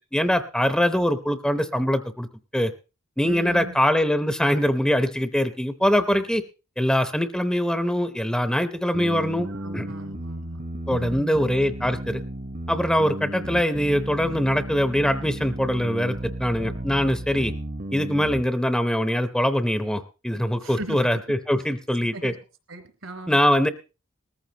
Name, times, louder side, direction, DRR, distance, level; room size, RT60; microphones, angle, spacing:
voice 1, 0.1-2.3 2.5-2.7 3.2-6.4 6.8-9.5 9.7-9.9 10.9-12.2 12.7-17.5 17.9-22.4 23.3-23.7, equal, 5° left, 9 dB, 0.7 m, -23 dB
voice 2, 3.2-3.7 9.5-10.6 10.9-11.4 20.6-21.0 22.1-22.3 22.7-23.4, right 1 dB, 75° right, 6 dB, 3.1 m, -38 dB
sound 1, 8.9-18.4, right 1 dB, 40° right, 1.0 m, -34 dB
20.0 x 14.5 x 2.9 m, 0.31 s
head